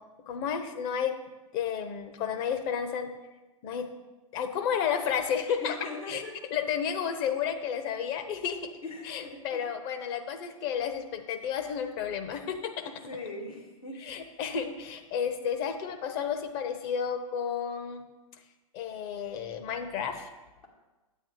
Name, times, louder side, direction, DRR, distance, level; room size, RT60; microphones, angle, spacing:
voice 1, 0.3-1.2 1.5-3.1 3.6-3.9 4.3-5.8 6.1-6.2 6.5-8.7 9.0-12.9 14.0-18.1 18.7-20.3, left 7 dB, 40° left, 7 dB, 1.0 m, -32 dB
voice 2, 5.6-6.3 8.8-9.6 13.1-14.0, left 3 dB, 80° left, -4 dB, 2.8 m, -40 dB
8.6 x 8.3 x 4.0 m, 1.1 s
figure-of-eight pair, 105°, 18 cm